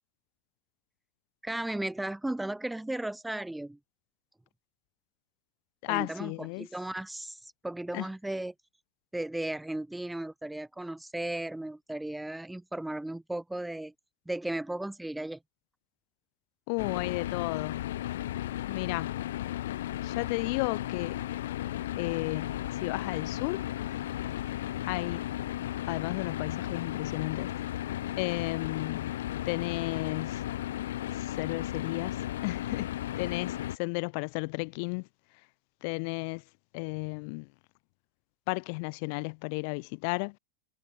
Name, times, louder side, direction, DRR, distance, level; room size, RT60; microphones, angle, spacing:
voice 1, 1.4-3.8 5.9-8.5 9.1-13.9 14.3-15.4, right 1 dB, 5° right, 1.1 m, -35 dB
voice 2, 5.8-6.7 7.9-8.0 16.7-17.9 18.7-19.2 20.0-21.2 22.0-23.6 24.8-25.2 25.9-27.5 28.2-29.2 29.4-30.4 31.2-32.1 32.4-32.9 33.2-35.1 35.8-36.4 36.7-37.5 38.5-40.4, left 36 dB, 50° left, 1.3 m, -33 dB
sound 1, 16.8-33.8, left 13 dB, 80° left, 5.6 m, -35 dB
supercardioid pair, 155°, 0 cm